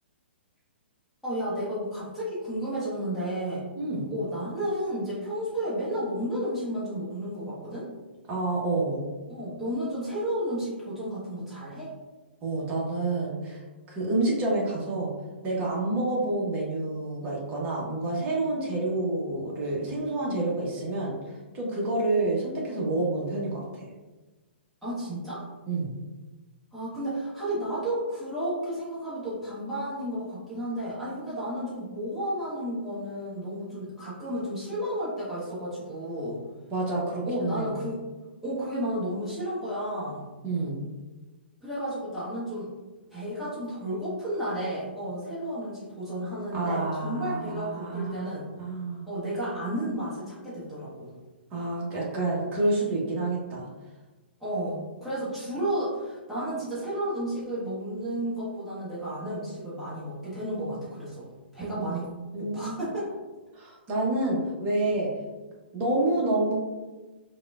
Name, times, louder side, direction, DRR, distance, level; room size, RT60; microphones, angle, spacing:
voice 1, 1.2-3.6 4.1-7.9 9.3-11.9 24.8-25.5 26.7-36.4 37.2-38.0 38.4-40.2 41.6-42.7 43.1-48.5 49.1-51.1 54.4-61.3 61.5-62.1 62.4-63.2, right 1 dB, ahead, -12 dB, 1.0 m, -32 dB
voice 2, 3.8-4.1 8.3-9.0 12.4-15.1 15.4-23.9 25.7-25.9 36.7-37.8 40.4-40.8 46.5-48.3 48.6-49.1 51.5-53.7 61.8-61.9 62.3-62.8 63.5-65.1 65.7-66.5, right 2 dB, 25° right, -4 dB, 0.9 m, -28 dB
3.5 x 2.2 x 2.4 m, 1.2 s
figure-of-eight pair, 120°, 6 cm